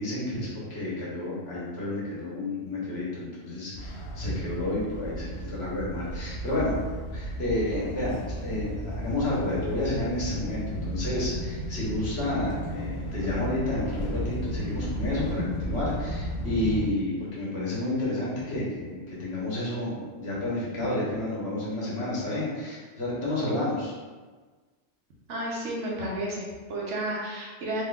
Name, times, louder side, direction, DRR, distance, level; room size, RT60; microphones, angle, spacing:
voice 1, 0.0-6.8 7.1-8.2 8.4-23.9, left 1 dB, 60° left, -7 dB, 1.3 m, -30 dB
sound 1, 3.7-16.9, equal, 80° left, 0.9 m, -34 dB
voice 2, 25.3-27.8, right 1 dB, 80° right, -4 dB, 1.1 m, -32 dB
3.6 x 3.2 x 2.3 m, 1.4 s
omnidirectional pair, 1.2 m